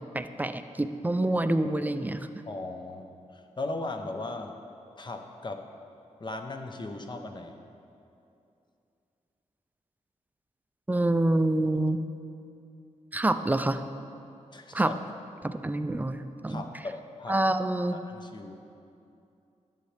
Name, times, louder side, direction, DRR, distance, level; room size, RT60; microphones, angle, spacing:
voice 1, 0.0-2.3 10.9-12.0 13.1-13.8 14.7-14.9 15.4-16.7 17.3-18.0, right 1 dB, 15° right, 10 dB, 0.4 m, -27 dB
voice 2, 2.5-4.5 5.0-5.6 6.2-7.6 14.5-15.0 16.5-17.4 17.9-18.6, left 2 dB, 35° left, 5 dB, 0.8 m, -38 dB
11.0 x 7.9 x 3.4 m, 2.6 s
cardioid pair, 75°, 13 cm